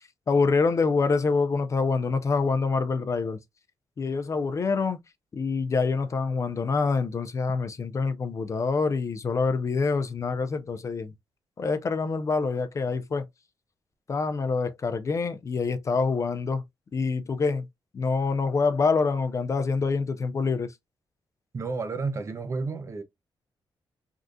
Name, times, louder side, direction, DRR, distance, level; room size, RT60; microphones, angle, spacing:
voice 1, 0.3-3.4 4.0-5.0 5.3-11.1 11.6-13.3 14.1-16.6 16.9-17.7 17.9-20.7, left 4 dB, 35° left, 0.4 m, -26 dB
voice 2, 21.5-23.0, right 4 dB, 35° right, 0.5 m, -31 dB
3.5 x 2.3 x 2.5 m
wide cardioid pair, 150°, 9 cm